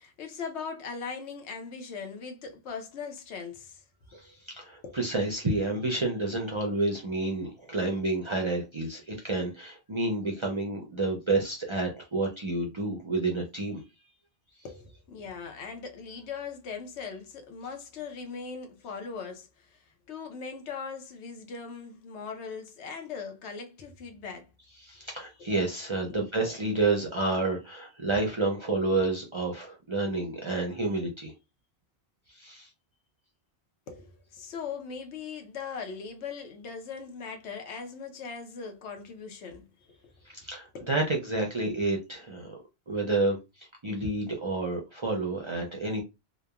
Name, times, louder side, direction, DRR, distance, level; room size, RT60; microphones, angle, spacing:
voice 1, 0.0-3.8 4.1-4.3 4.8-5.0 14.6-24.5 26.1-26.2 33.9-39.6 40.0-40.1 40.7-40.9, left 5 dB, 85° left, 1.0 m, -40 dB
voice 2, 4.1-13.8 24.8-31.3 32.3-32.7 40.3-42.6 42.9-46.0, right 2 dB, 40° right, 0.4 m, -29 dB
2.9 x 2.1 x 2.3 m
omnidirectional pair, 1.1 m